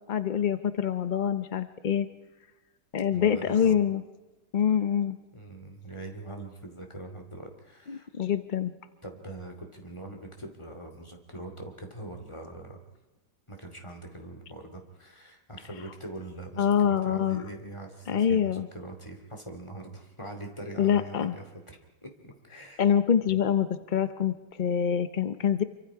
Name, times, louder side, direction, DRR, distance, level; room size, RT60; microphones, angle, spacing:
voice 1, 0.0-2.1 2.9-4.0 4.5-5.2 7.9-8.7 16.6-17.4 18.1-18.7 20.8-21.4 22.8-25.6, left 8 dB, 65° left, 11 dB, 0.4 m, -25 dB
voice 2, 3.1-3.8 5.3-8.1 9.0-12.8 13.5-22.9 23.3-23.4, right 2 dB, 15° left, 3 dB, 2.4 m, -43 dB
26.5 x 24.0 x 4.9 m, 1.2 s
omnidirectional pair, 1.9 m